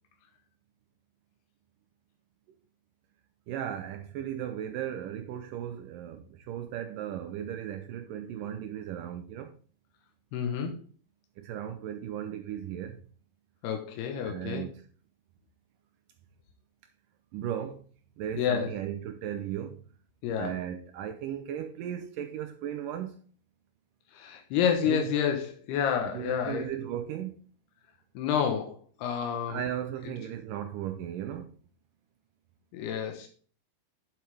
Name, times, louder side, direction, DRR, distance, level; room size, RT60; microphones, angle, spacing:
voice 1, 3.5-9.6 11.4-13.0 14.1-14.9 17.3-17.8 18.2-19.8 20.3-23.2 24.8-25.0 26.1-27.4 29.5-31.5, right 10 dB, 85° right, 1.9 m, -36 dB
voice 2, 10.3-10.8 13.6-14.7 18.4-18.7 20.2-20.5 24.1-26.7 28.2-29.6 32.7-33.3, left 8 dB, 90° left, 3.1 m, -29 dB
9.2 x 7.5 x 3.4 m
omnidirectional pair, 4.6 m